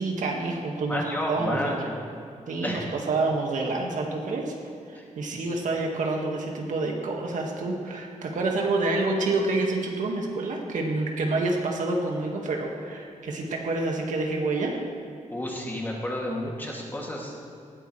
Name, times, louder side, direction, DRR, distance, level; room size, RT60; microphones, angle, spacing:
voice 1, 0.0-1.8 2.5-4.5 4.9-14.8, right 2 dB, 75° right, 0 dB, 1.9 m, -28 dB
voice 2, 0.9-2.0 2.6-2.8 4.9-5.1 15.3-17.3, left 1 dB, 15° left, -3 dB, 2.6 m, -31 dB
19.0 x 13.0 x 3.3 m, 2.5 s
wide cardioid pair, 125°, 13 cm